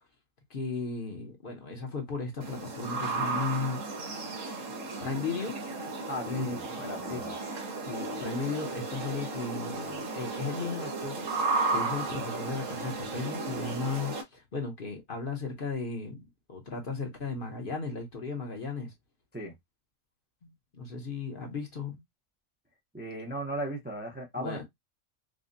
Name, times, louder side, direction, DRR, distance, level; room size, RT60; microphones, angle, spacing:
voice 1, 0.5-3.8 5.0-5.6 6.3-7.3 7.8-11.3 11.7-18.9 20.4-22.0 24.4-24.6, left 4 dB, 45° left, 1.0 m, -35 dB
sound 1, 2.4-14.2, right 3 dB, 75° right, 1.3 m, -34 dB
voice 2, 6.1-7.3 19.3-19.5 22.9-24.6, right 1 dB, 10° right, 0.6 m, -37 dB
4.9 x 2.2 x 2.6 m
omnidirectional pair, 1.4 m